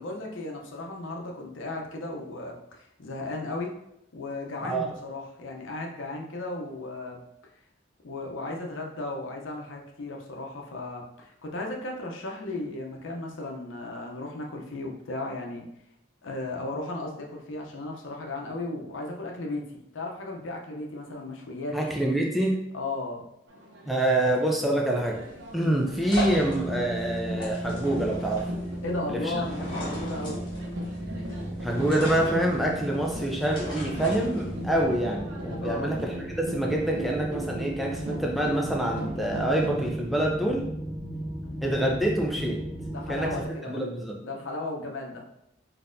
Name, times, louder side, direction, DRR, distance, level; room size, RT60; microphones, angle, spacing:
voice 1, 0.0-3.7 4.1-7.2 8.0-15.7 16.2-21.8 22.7-23.2 28.8-30.4 35.6-35.9 42.9-43.8 44.2-45.2, left 2 dB, 90° left, 1 dB, 0.6 m, -35 dB
voice 2, 21.7-22.6 23.9-25.2 25.5-28.5 29.1-29.3 31.6-40.6 41.6-42.6 43.1-43.3 43.7-44.2, right 1 dB, ahead, -1 dB, 0.4 m, -26 dB
sound 1, 23.5-39.9, left 1 dB, 80° right, 0.7 m, -40 dB
sound 2, 25.0-34.8, left 1 dB, 25° left, 1.1 m, -38 dB
sound 3, 26.2-43.5, right 1 dB, 25° right, 1.0 m, -36 dB
4.0 x 2.7 x 2.6 m, 0.81 s
head